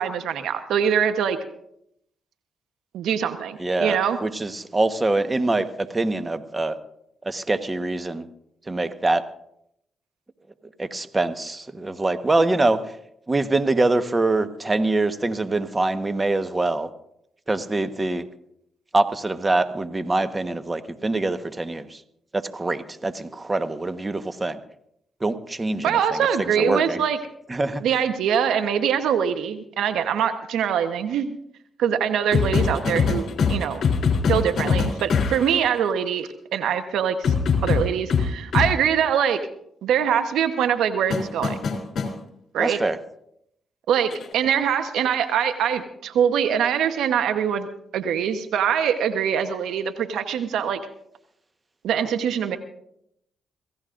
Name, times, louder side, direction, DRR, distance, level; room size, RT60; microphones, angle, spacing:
voice 1, 0.0-1.4 2.9-4.2 25.8-27.2 27.8-31.4 31.8-33.8 34.3-37.3 37.6-39.4 39.8-41.6 42.5-42.8 43.9-50.8 51.8-52.6, right 8 dB, 85° right, 9 dB, 1.0 m, -23 dB
voice 2, 3.6-6.7 7.2-8.3 8.7-9.2 10.8-12.8 13.3-16.9 17.5-18.2 18.9-22.0 22.3-24.6 25.2-27.0 27.5-27.8 42.6-43.0, right 2 dB, 25° right, 9 dB, 1.2 m, -24 dB
sound 1, 32.3-35.5 37.2-38.7 41.1-42.1 44.1-44.3, left 5 dB, 65° left, 3.4 m, -22 dB
27.0 x 16.0 x 2.6 m, 0.75 s
cardioid pair, 65°, 0 cm